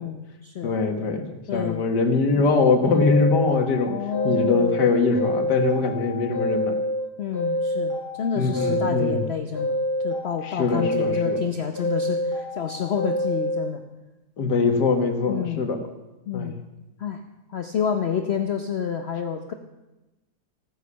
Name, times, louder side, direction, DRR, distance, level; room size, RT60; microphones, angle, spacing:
voice 1, 0.0-0.7 1.5-1.9 3.9-4.8 7.2-13.8 15.3-15.6 16.3-16.6 17.0-17.2 17.5-19.5, left 8 dB, 50° left, 6 dB, 0.9 m, -29 dB
voice 2, 0.6-3.9 4.2-6.7 8.4-9.2 10.6-11.4 14.4-15.8 16.3-16.5, left 4 dB, 85° left, 7 dB, 2.0 m, -22 dB
sound 1, 2.9-4.8 5.1-7.0 7.3-9.2 9.5-11.4 11.8-13.6, left 1 dB, 75° right, 6.8 m, -27 dB
15.5 x 9.8 x 6.9 m, 1.0 s
omnidirectional pair, 1.8 m